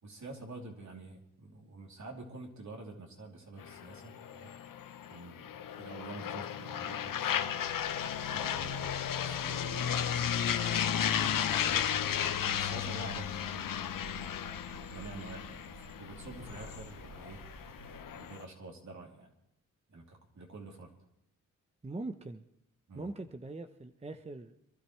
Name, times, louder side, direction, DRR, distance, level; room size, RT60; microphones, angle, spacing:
voice 1, 0.0-4.5 5.1-7.7 8.2-10.3 11.6-11.9 12.4-14.3 14.7-17.4 18.1-19.3 19.9-20.9 22.9-23.1, right 2 dB, 60° right, 0 dB, 3.1 m, -48 dB
sound 1, 3.6-18.4, left 9 dB, 80° left, 0.8 m, -34 dB
sound 2, 7.0-18.0, right 2 dB, 75° right, 3.0 m, -52 dB
voice 2, 21.8-22.4 22.9-24.6, right 2 dB, 20° right, 8 dB, 0.8 m, -42 dB
26.5 x 12.5 x 3.2 m, 0.76 s
cardioid pair, 70°, 33 cm